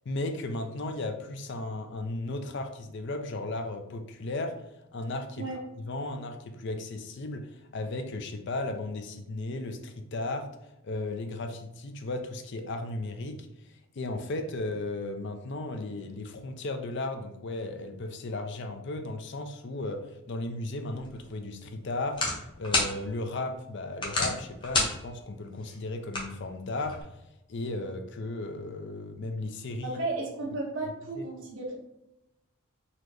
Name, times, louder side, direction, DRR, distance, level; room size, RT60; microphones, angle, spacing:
voice 1, 0.1-4.6 4.9-5.5 5.8-10.5 10.8-27.0 27.5-30.0 31.2-31.3, left 2 dB, 55° left, 6 dB, 0.5 m, -35 dB
sound 1, 20.9-27.0, left 2 dB, 20° left, 0.8 m, -34 dB
voice 2, 29.8-31.7, right 2 dB, 60° right, -3 dB, 1.2 m, -34 dB
4.1 x 2.8 x 3.2 m, 0.88 s
head